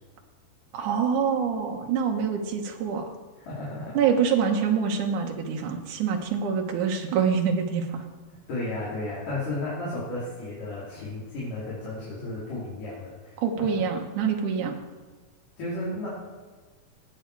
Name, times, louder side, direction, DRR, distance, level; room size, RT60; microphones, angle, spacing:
voice 1, 0.7-3.1 3.9-8.0 13.4-14.7, right 6 dB, 65° right, 3 dB, 2.3 m, -25 dB
voice 2, 3.4-4.0 8.5-13.7 15.6-16.1, left 2 dB, 60° left, -10 dB, 4.4 m, -33 dB
20.0 x 8.1 x 4.6 m, 1.4 s
omnidirectional pair, 4.5 m